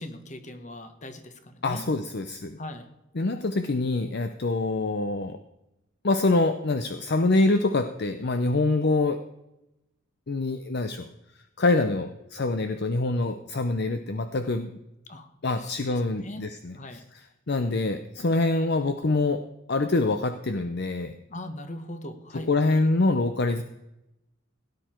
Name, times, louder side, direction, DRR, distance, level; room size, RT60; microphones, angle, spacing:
voice 1, 0.0-1.8 2.6-2.9 15.1-15.3 15.6-15.7 16.2-16.4 16.7-17.0 21.3-22.8, left 1 dB, 35° left, 8 dB, 1.3 m, -40 dB
voice 2, 1.6-2.6 3.2-5.4 6.0-9.2 10.3-11.1 11.6-14.7 15.4-17.0 17.5-19.4 19.7-21.1 22.5-23.6, left 2 dB, 50° left, 9 dB, 0.6 m, -25 dB
17.0 x 10.0 x 4.5 m, 0.90 s
head